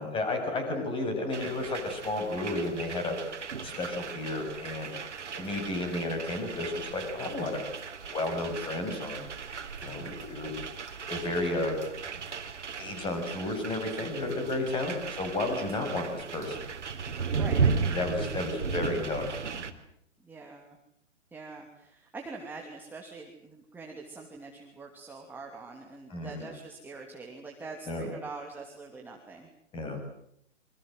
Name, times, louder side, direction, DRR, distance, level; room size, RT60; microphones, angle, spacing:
voice 1, 0.0-5.0 5.3-7.6 8.0-9.3 9.8-10.5 10.8-11.8 12.0-12.2 12.8-16.7 17.9-19.4 26.1-26.5 27.9-28.1 29.7-30.0, left 2 dB, 15° left, 6 dB, 7.3 m, -32 dB
sound 1, 1.3-19.7, right 5 dB, 70° right, 3.5 m, -35 dB
voice 2, 17.3-17.7 20.2-20.8 21.3-29.5, right 3 dB, 5° right, 0 dB, 2.9 m, -44 dB
28.5 x 25.0 x 7.9 m, 0.71 s
figure-of-eight pair, 135°, 37 cm